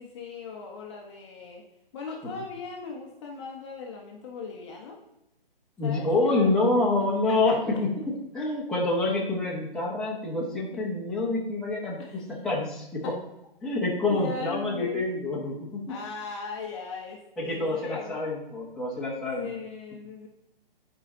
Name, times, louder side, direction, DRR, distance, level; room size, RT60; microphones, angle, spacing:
voice 1, 0.0-1.6 1.9-5.0 5.8-6.5 7.3-7.6 10.7-10.8 12.0-12.2 13.0-13.1 14.1-15.1 15.9-18.2 19.4-20.3, left 4 dB, 30° left, 0 dB, 1.0 m, -38 dB
voice 2, 5.8-7.9 8.3-13.1 13.6-16.0 17.4-19.5, left 2 dB, ahead, -6 dB, 1.3 m, -27 dB
10.5 x 5.0 x 3.8 m, 0.86 s
figure-of-eight pair, 140°, 29 cm